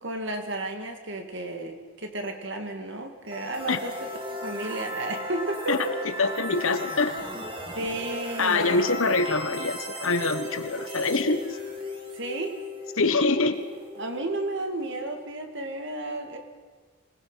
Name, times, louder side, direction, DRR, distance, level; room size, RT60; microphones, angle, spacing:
voice 1, 0.0-3.9 4.4-6.0 7.7-8.8 12.1-12.6 14.0-16.4, right 2 dB, 55° right, 5 dB, 2.4 m, -32 dB
sound 1, 3.3-15.1, left 1 dB, 25° right, 2.4 m, -37 dB
voice 2, 6.2-7.2 8.4-11.4 13.0-13.6, left 3 dB, 65° left, 9 dB, 1.4 m, -24 dB
25.5 x 19.5 x 5.8 m, 1.4 s
head